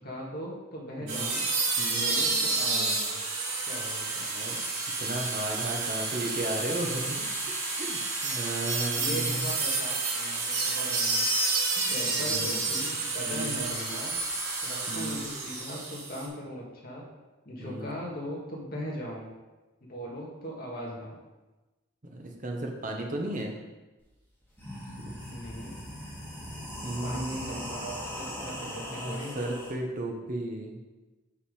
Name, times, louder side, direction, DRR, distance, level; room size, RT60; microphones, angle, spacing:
voice 1, 0.0-1.5 1.9-3.2 3.7-4.3 8.9-11.3 11.8-14.2 14.6-17.0 17.5-19.3 19.8-21.2 25.3-25.8 27.0-29.4, equal, 45° left, -3 dB, 1.9 m, -39 dB
sound 1, 1.1-16.3, right 3 dB, 60° right, 2.8 m, -30 dB
voice 2, 1.8-2.1 4.3-4.6 5.0-9.5 10.7-10.8 11.8-12.5 13.3-13.5 14.9-15.2 17.6-17.9 22.0-23.5 24.9-25.1 26.8-27.6 28.6-30.8, right 1 dB, 40° right, 1 dB, 1.1 m, -35 dB
sound 2, 24.0-24.1 24.4-29.7, equal, 10° left, 2.2 m, -39 dB
7.3 x 5.8 x 4.9 m, 1.1 s
head